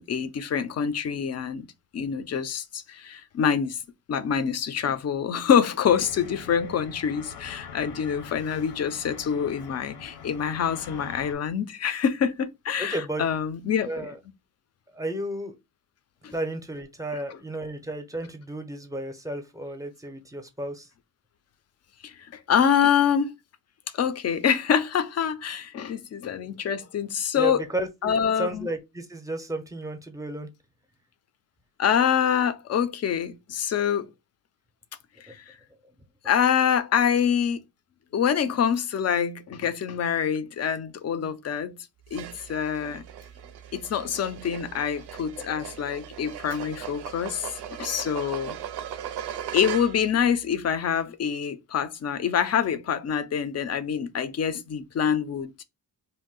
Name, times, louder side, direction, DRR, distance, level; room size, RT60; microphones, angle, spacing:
voice 1, 0.0-1.7 1.9-3.8 4.1-14.1 16.2-16.3 22.0-23.3 23.9-27.6 28.0-28.7 31.8-34.1 35.2-35.5 36.2-37.6 38.1-41.8 42.1-43.0 43.7-48.6 49.5-55.6, left 8 dB, 40° left, 0.4 m, -26 dB
sound 1, 5.8-11.3, left 7 dB, 85° left, 0.8 m, -43 dB
voice 2, 12.8-13.2 13.8-14.2 14.9-15.6 16.3-20.9 27.3-30.5 35.3-35.4 35.8-35.9 45.5-45.6, right 1 dB, 10° right, 0.6 m, -33 dB
sound 2, 42.1-50.2, right 9 dB, 85° right, 0.6 m, -38 dB
2.6 x 2.0 x 3.8 m
wide cardioid pair, 115°, 39 cm